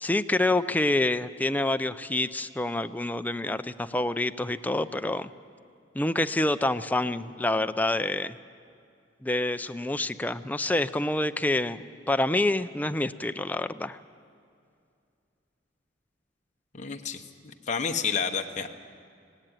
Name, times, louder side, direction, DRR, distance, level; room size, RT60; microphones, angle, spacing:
voice 1, 0.0-5.3 5.9-8.4 9.2-14.0, left 2 dB, 10° left, 10 dB, 0.5 m, -27 dB
voice 2, 16.7-18.7, left 6 dB, 40° left, 4 dB, 1.0 m, -30 dB
18.0 x 17.5 x 9.0 m, 2.3 s
head